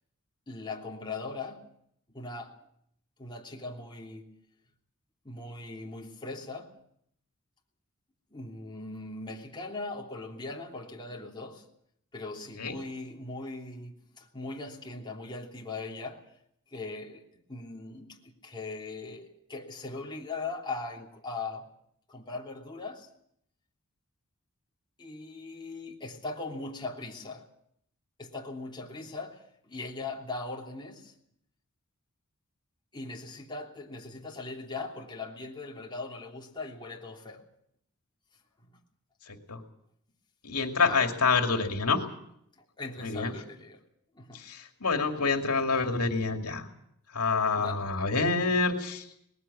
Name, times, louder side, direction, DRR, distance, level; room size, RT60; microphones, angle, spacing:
voice 1, 0.5-1.6 2.1-2.5 3.2-4.3 5.2-6.7 8.3-11.6 12.1-16.3 16.7-17.2 17.5-18.2 18.4-21.7 22.1-23.1 25.0-27.5 28.2-31.1 32.9-37.4 38.7-38.8 40.8-41.1 42.6-43.8 44.1-44.4 47.6-47.9, left 3 dB, 20° left, -2 dB, 3.2 m, -40 dB
voice 2, 39.3-39.6 40.4-42.0 43.0-43.3 44.3-46.7 47.1-49.0, left 4 dB, 80° left, 4 dB, 2.5 m, -27 dB
20.0 x 15.5 x 8.5 m, 0.73 s
head